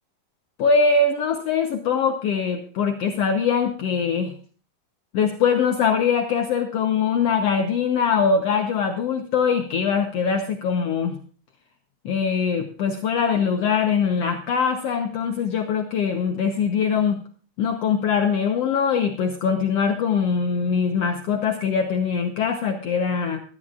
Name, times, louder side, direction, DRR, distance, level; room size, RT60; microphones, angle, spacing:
voice 1, 0.6-4.3 5.1-11.2 12.0-17.2 17.6-23.4, left 6 dB, 65° left, 4 dB, 1.8 m, -22 dB
18.5 x 13.0 x 2.4 m, 0.42 s
omnidirectional pair, 3.4 m